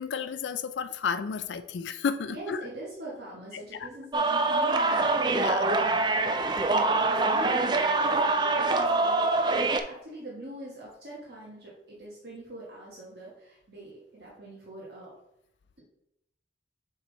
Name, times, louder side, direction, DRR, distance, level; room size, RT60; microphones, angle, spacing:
voice 1, 0.0-2.6 3.5-3.9 5.3-5.6 6.5-6.6, left 6 dB, 75° left, 12 dB, 0.4 m, -32 dB
voice 2, 2.3-15.1, right 1 dB, 60° right, -5 dB, 1.3 m, -43 dB
sound 1, 4.1-9.8, right 3 dB, 25° right, 0.3 m, -24 dB
7.1 x 3.4 x 4.0 m, 0.80 s
head